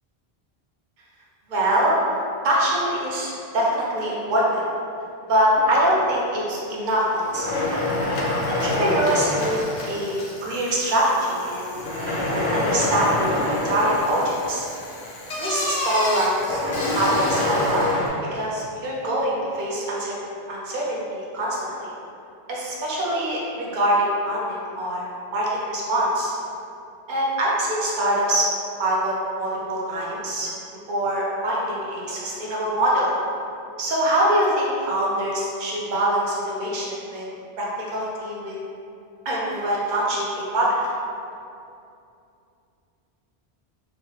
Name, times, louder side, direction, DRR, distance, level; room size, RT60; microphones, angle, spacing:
voice 1, 1.5-2.0 2.4-4.6 5.3-7.7 8.5-9.6 9.9-11.7 12.3-14.6 15.4-16.6 16.9-17.8 18.3-20.2 20.5-21.9 22.5-26.3 27.1-28.4 28.8-30.5 30.9-33.1 33.8-37.3 37.6-37.7 37.9-38.6 39.2-40.8, right 1 dB, 55° right, -5 dB, 0.7 m, -24 dB
sound 1, 5.6-6.8 7.3-10.4 11.7-15.2 16.3-18.1, left 2 dB, 15° right, 0.8 m, -26 dB
Bicycle, 6.9-7.0 7.3-18.1, left 1 dB, 55° left, 0.5 m, -35 dB
3.3 x 2.1 x 3.1 m, 2.6 s
omnidirectional pair, 1.1 m